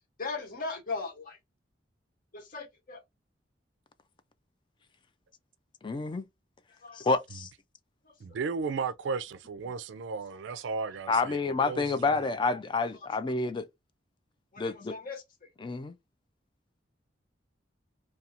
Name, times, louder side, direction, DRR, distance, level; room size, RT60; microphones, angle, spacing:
voice 1, 0.2-1.4 2.3-3.0 6.8-7.1 8.0-8.1 12.5-12.6 14.5-15.2, left 4 dB, 50° left, 1.3 m, -38 dB
voice 2, 5.8-6.2 6.9-7.5 11.1-13.7 14.6-15.0 15.6-15.9, left 3 dB, 25° left, 0.3 m, -29 dB
voice 3, 8.2-12.2, right 5 dB, 80° right, 0.4 m, -35 dB
2.5 x 2.3 x 2.8 m
head